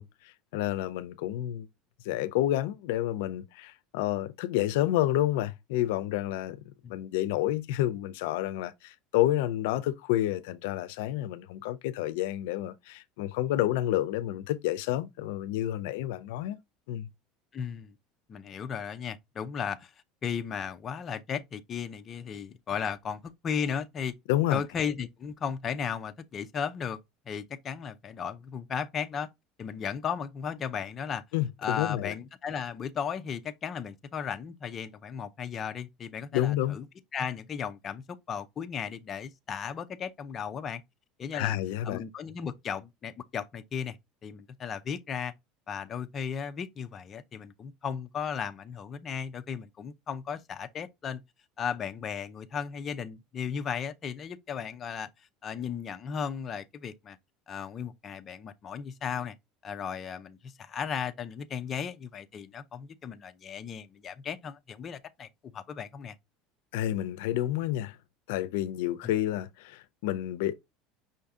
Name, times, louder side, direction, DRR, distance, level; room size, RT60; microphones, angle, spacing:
voice 1, 0.0-1.7 2.0-6.6 6.9-16.6 16.9-17.1 24.3-24.6 31.3-32.1 36.3-36.8 41.3-42.0 66.7-68.0 68.3-70.5, left 13 dB, 85° left, 0.4 m, -29 dB
voice 2, 17.5-17.9 18.3-19.9 20.2-24.1 24.5-27.0 27.3-29.3 29.6-31.2 31.6-36.8 37.1-40.8 41.2-41.6 41.8-44.0 44.2-45.3 45.7-51.2 51.6-55.1 55.4-57.2 57.5-59.3 59.6-65.3 65.5-66.1 69.0-69.1, left 7 dB, 25° left, 0.5 m, -35 dB
5.7 x 2.6 x 3.5 m
cardioid pair, 150°, 0 cm